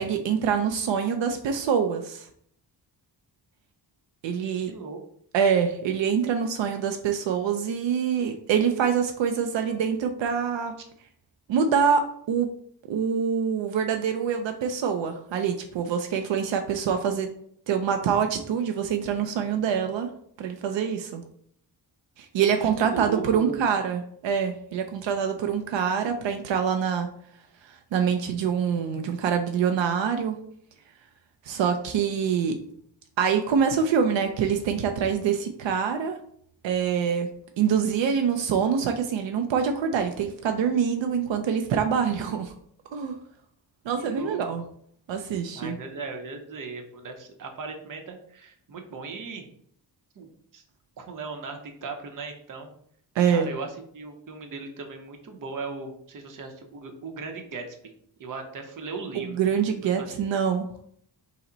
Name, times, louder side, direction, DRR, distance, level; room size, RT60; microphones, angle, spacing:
voice 1, 0.0-2.3 4.2-4.7 5.3-10.7 11.5-12.5 12.9-17.3 17.7-20.1 20.4-21.2 22.2-27.1 27.7-30.4 31.4-32.5 33.2-36.2 36.6-37.3 37.6-42.5 42.9-43.2 43.9-44.6 45.1-45.8 53.2-53.5 59.1-60.7, right 7 dB, 80° right, 6 dB, 0.6 m, -25 dB
voice 2, 4.4-5.0 22.6-23.6 44.0-44.4 45.5-49.5 50.2-50.3 50.5-50.6 51.0-52.7 53.3-53.7 53.9-57.8 58.2-59.3 60.0-60.1, right 4 dB, 45° right, 5 dB, 0.7 m, -37 dB
5.5 x 2.1 x 3.9 m, 0.64 s
wide cardioid pair, 170°, 44 cm